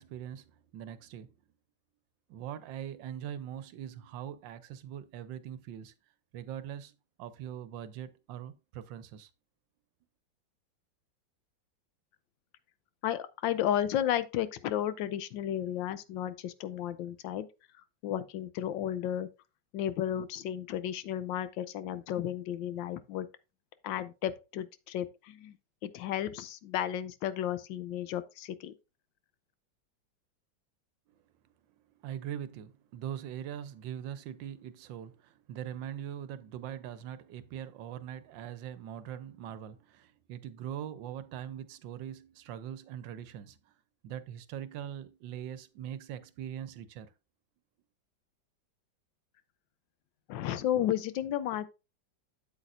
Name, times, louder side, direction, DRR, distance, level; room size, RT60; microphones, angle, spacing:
voice 1, 0.0-1.3 2.3-5.9 6.3-9.3 32.0-43.7 44.0-47.1, right 10 dB, 80° right, 1.4 m, -42 dB
voice 2, 13.0-17.5 18.0-19.3 19.7-23.3 23.8-25.6 25.8-28.7 50.3-51.7, left 11 dB, 80° left, 1.3 m, -33 dB
8.2 x 7.9 x 2.5 m
omnidirectional pair, 2.0 m